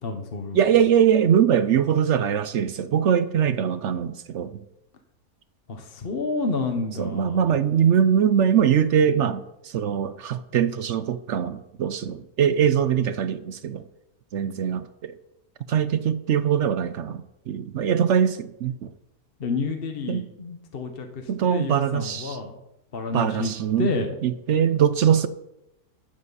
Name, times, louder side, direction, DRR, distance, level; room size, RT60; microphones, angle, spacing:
voice 1, 0.0-0.6 5.7-7.5 19.4-22.6 22.9-23.5 23.8-24.1, left 3 dB, 40° left, 1.2 m, -29 dB
voice 2, 0.5-4.6 7.0-13.8 14.3-15.1 15.7-18.9 20.1-20.2 21.3-22.4 23.1-23.9 24.2-25.3, right 8 dB, 65° right, 0.8 m, -22 dB
12.5 x 10.5 x 4.1 m
omnidirectional pair, 1.6 m